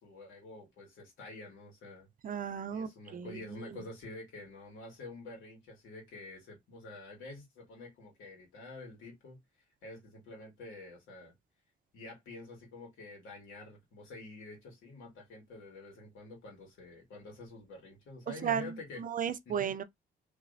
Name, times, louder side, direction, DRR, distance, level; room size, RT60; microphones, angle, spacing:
voice 1, 0.0-2.1 2.7-9.4 9.8-11.3 11.9-19.0 19.5-19.7, left 2 dB, 85° left, 2.0 m, -48 dB
voice 2, 2.2-3.4 3.7-3.8 18.4-19.8, right 8 dB, 45° right, 0.5 m, -35 dB
3.2 x 3.0 x 2.6 m
cardioid pair, 90°, 20 cm